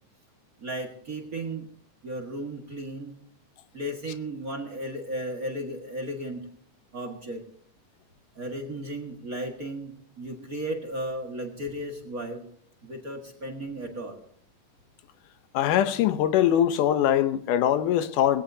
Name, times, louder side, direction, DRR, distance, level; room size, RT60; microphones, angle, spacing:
voice 1, 0.6-1.7 2.0-3.1 3.7-6.4 6.9-7.4 8.3-12.4 12.8-14.2, right 1 dB, 35° right, 1.6 m, -35 dB
voice 2, 15.5-18.4, left 10 dB, 85° left, 2.5 m, -22 dB
19.5 x 17.0 x 2.8 m
omnidirectional pair, 3.6 m